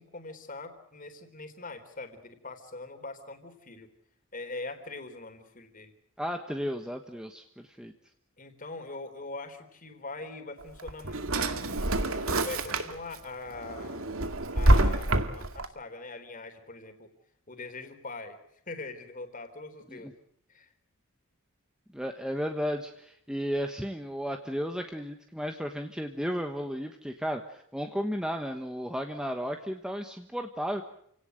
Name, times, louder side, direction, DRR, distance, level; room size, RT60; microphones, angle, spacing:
voice 1, 0.0-3.9 4.3-5.9 8.4-11.6 12.1-14.0 14.5-17.1 17.5-18.4 18.7-20.1 20.5-20.7, left 3 dB, 40° left, 7 dB, 3.7 m, -42 dB
voice 2, 6.2-7.9 19.9-20.1 21.9-30.8, equal, 5° right, 5 dB, 1.2 m, -34 dB
Drawer open or close, 10.6-13.2 13.6-15.7, right 1 dB, 70° right, 2.1 m, -26 dB
29.0 x 18.0 x 7.8 m, 0.74 s
head